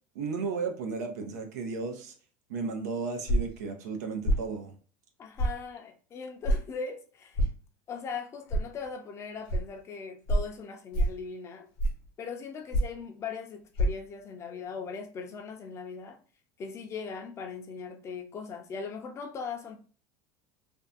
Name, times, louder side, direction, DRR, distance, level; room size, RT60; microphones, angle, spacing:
voice 1, 0.1-2.1 2.5-4.7, right 4 dB, 90° right, 0.6 m, -34 dB
sound 1, 3.3-3.6 4.2-4.5 5.4-5.6 6.4-6.6 7.3-7.6 8.5-8.6 9.5-9.6 10.3-10.5 10.9-11.2 11.8-12.1 12.7-13.0 13.7-13.9, right 1 dB, 60° left, 0.9 m, -25 dB
voice 2, 5.2-7.4 7.9-11.7 12.2-16.2 16.6-19.8, left 5 dB, 35° left, 0.5 m, -39 dB
2.6 x 2.2 x 2.4 m
supercardioid pair, 115°, 9 cm